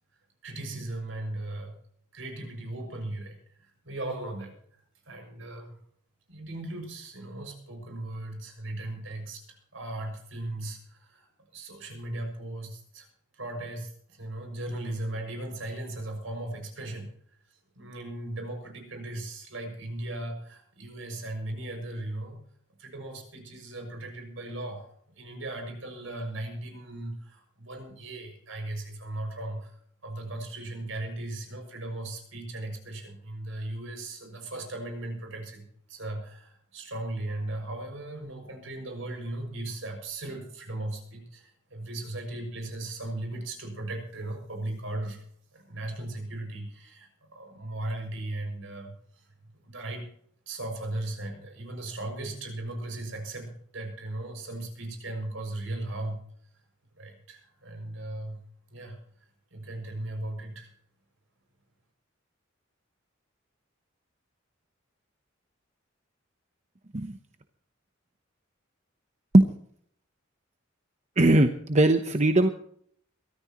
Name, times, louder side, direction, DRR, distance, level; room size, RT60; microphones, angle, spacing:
voice 1, 0.4-1.7 2.1-4.6 5.0-5.8 6.3-13.1 13.3-17.1 17.7-22.4 22.8-45.2 45.5-49.2 49.6-50.1 50.5-56.2 57.0-58.4 58.7-59.0 59.5-60.7, right 1 dB, 75° right, 4 dB, 6.5 m, -37 dB
voice 2, 71.2-72.5, right 1 dB, 35° right, 7 dB, 0.9 m, -20 dB
23.0 x 14.0 x 3.1 m, 0.63 s
head